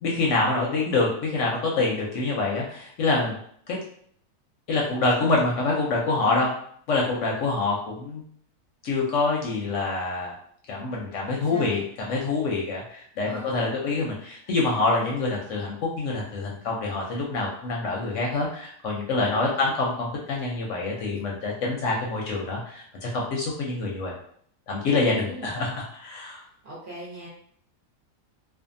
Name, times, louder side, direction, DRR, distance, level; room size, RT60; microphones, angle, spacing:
voice 1, 0.0-3.4 3.7-3.8 4.7-6.5 6.9-8.2 8.8-10.3 10.7-24.1 24.7-26.4, left 3 dB, 70° left, -2 dB, 0.8 m, -26 dB
voice 2, 11.4-11.8 13.2-13.7 19.2-19.7 25.1-25.5 26.6-27.3, right 2 dB, 50° right, -5 dB, 0.9 m, -39 dB
2.6 x 2.4 x 2.5 m, 0.63 s
omnidirectional pair, 1.6 m